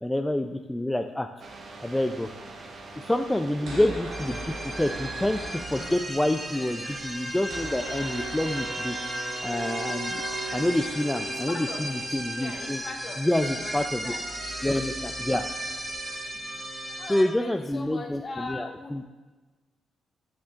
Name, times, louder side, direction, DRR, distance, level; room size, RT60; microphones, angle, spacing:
voice 1, 0.0-1.3 1.8-2.3 3.0-5.4 5.7-9.0 9.4-10.2 10.5-12.8 13.2-14.1 14.6-15.4 17.1-19.1, left 1 dB, 10° left, 6 dB, 0.4 m, -27 dB
sound 1, 1.4-13.0, right 2 dB, 60° right, 1.1 m, -44 dB
voice 2, 3.6-3.9 11.2-12.0 12.4-14.3 17.0-18.9, left 3 dB, 40° left, 2 dB, 1.3 m, -40 dB
sound 2, 3.7-6.3 6.5-6.6 6.8-16.2, right 2 dB, 80° right, 1.6 m, -40 dB
sound 3, 4.1-17.2, right 1 dB, 20° right, 2.4 m, -35 dB
8.6 x 7.5 x 2.5 m, 1.2 s
supercardioid pair, 60°, 0 cm